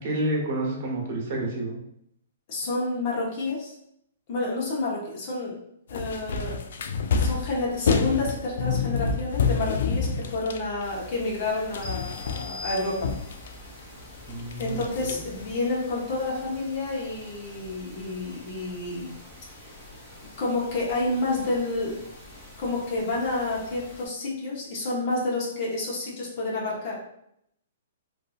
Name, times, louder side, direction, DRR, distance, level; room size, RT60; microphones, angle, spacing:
voice 1, 0.0-1.8 14.3-15.2, right 1 dB, 45° right, -2 dB, 1.1 m, -29 dB
voice 2, 2.5-3.8 4.3-5.6 5.9-6.6 7.2-13.1 14.6-19.2 19.6-19.7 20.4-22.0 22.6-27.0, left 2 dB, 50° left, -4 dB, 0.9 m, -29 dB
sound 1, 5.9-11.5 11.7-13.8 14.3-15.5, left 5 dB, 70° left, 0.3 m, -28 dB
sound 2, 10.8-24.1, left 1 dB, 30° left, 1.1 m, -47 dB
sound 3, 11.8-13.5, left 4 dB, 10° left, 0.8 m, -41 dB
2.6 x 2.5 x 2.4 m, 0.75 s
hypercardioid pair, 130°, 0 cm